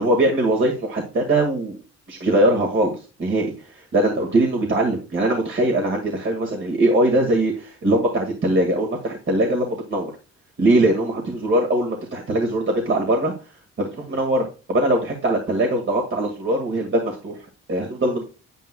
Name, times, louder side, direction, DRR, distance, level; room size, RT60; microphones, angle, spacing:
voice 1, 0.0-1.8 2.1-10.1 10.6-13.3 13.8-17.4 17.7-18.2, right 1 dB, 40° right, 0 dB, 1.9 m, -21 dB
9.3 x 9.1 x 2.2 m, 0.34 s
cardioid pair, 90°, 30 cm